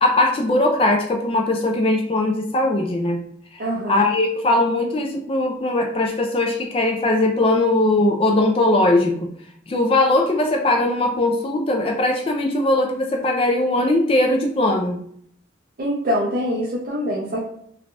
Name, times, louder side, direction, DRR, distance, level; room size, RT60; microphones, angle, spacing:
voice 1, 0.0-3.2 3.9-9.3 9.7-15.0, left 2 dB, 30° left, 3 dB, 0.3 m, -20 dB
voice 2, 3.6-4.1 15.8-17.4, equal, 55° right, -4 dB, 0.5 m, -24 dB
3.2 x 2.2 x 2.5 m, 0.67 s
head